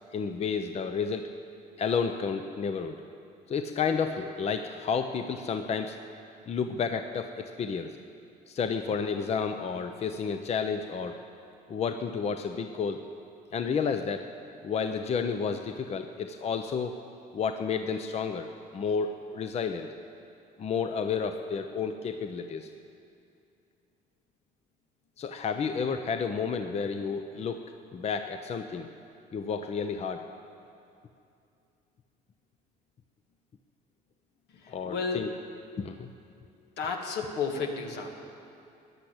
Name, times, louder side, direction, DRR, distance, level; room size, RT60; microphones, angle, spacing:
voice 1, 0.1-1.2 1.8-3.0 3.5-6.0 6.5-7.9 8.5-11.2 11.7-13.0 13.5-14.3 14.6-17.0 17.3-19.9 20.6-22.7 25.2-27.6 27.9-28.9 29.3-30.3 34.7-35.3 35.8-36.1, left 6 dB, 40° left, 7 dB, 0.7 m, -31 dB
voice 2, 34.5-35.3 36.8-38.1, left 5 dB, 80° left, 3 dB, 1.8 m, -32 dB
15.0 x 10.5 x 8.0 m, 2.6 s
cardioid pair, 110°, 17 cm